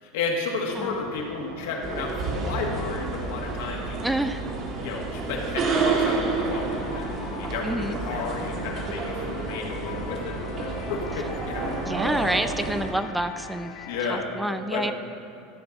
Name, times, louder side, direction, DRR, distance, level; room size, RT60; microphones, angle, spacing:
voice 1, 0.0-4.1 4.8-11.7 13.8-14.9, left 4 dB, 85° left, 0 dB, 1.7 m, -32 dB
sound 1, 0.7-12.4, right 2 dB, 90° right, 1.2 m, -43 dB
sound 2, 1.8-12.9, right 4 dB, 40° right, 1.2 m, -30 dB
voice 2, 4.0-4.4 7.6-8.0 11.9-13.7 14.1-14.9, right 1 dB, 5° right, 10 dB, 0.3 m, -28 dB
sound 3, 5.5-14.2, left 8 dB, 50° left, 0.6 m, -42 dB
13.0 x 5.8 x 4.0 m, 2.7 s
supercardioid pair, 140°, 0 cm